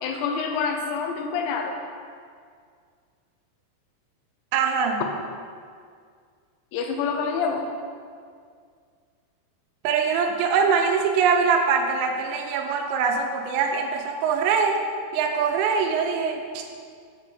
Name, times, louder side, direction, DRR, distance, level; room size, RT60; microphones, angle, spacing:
voice 1, 0.0-1.8 6.7-7.7, left 5 dB, 90° left, 4 dB, 2.9 m, -27 dB
voice 2, 4.5-5.0 9.8-14.8 15.1-16.7, right 5 dB, 85° right, 3 dB, 2.8 m, -23 dB
7.5 x 5.0 x 3.4 m, 2.1 s
omnidirectional pair, 5.0 m